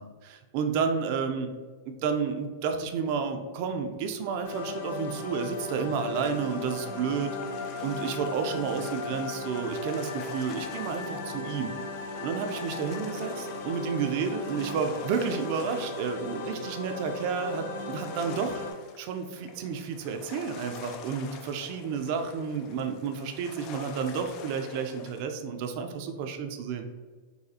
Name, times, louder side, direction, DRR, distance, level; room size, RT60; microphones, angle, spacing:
voice 1, 0.0-1.5 1.9-7.3 7.8-11.7 12.2-18.6 19.0-26.8, right 6 dB, 55° right, 6 dB, 0.4 m, -31 dB
sound 1, 4.4-18.7, left 3 dB, 70° left, 0.7 m, -37 dB
sound 2, 6.2-25.2, left 6 dB, 45° left, 0.4 m, -47 dB
4.0 x 2.3 x 2.7 m, 1.5 s
hypercardioid pair, 115°, 0 cm